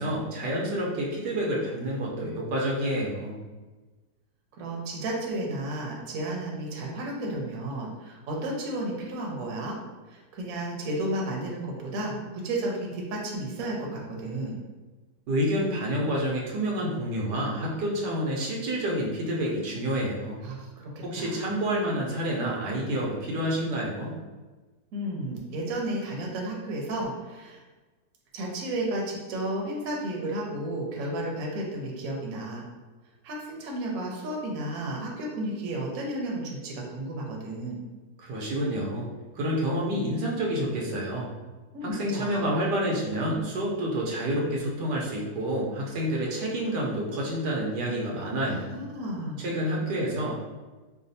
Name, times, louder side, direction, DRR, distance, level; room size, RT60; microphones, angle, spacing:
voice 1, 0.0-3.4 15.3-20.4 21.0-24.1 38.2-39.1 39.3-41.3 41.8-48.7 49.4-50.3, equal, 80° right, -3 dB, 1.3 m, -28 dB
voice 2, 4.5-9.7 10.1-14.6 20.4-21.5 24.9-27.6 28.3-32.6 33.2-37.8 41.7-42.5 48.4-49.4, right 1 dB, 60° right, -2 dB, 1.1 m, -33 dB
4.9 x 2.3 x 2.6 m, 1.2 s
omnidirectional pair, 1.8 m